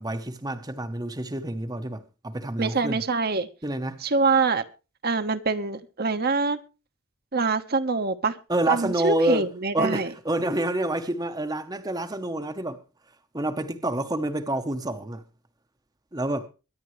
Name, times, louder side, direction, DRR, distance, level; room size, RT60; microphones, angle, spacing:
voice 1, 0.0-3.0 3.6-4.0 8.5-9.5 9.7-12.8 13.3-15.2 16.1-16.5, right 1 dB, 20° right, 0.9 m, -28 dB
voice 2, 2.6-3.5 4.0-4.6 5.0-6.6 7.3-8.4 8.7-10.1, right 4 dB, 45° right, 1.1 m, -25 dB
23.5 x 10.5 x 3.2 m
head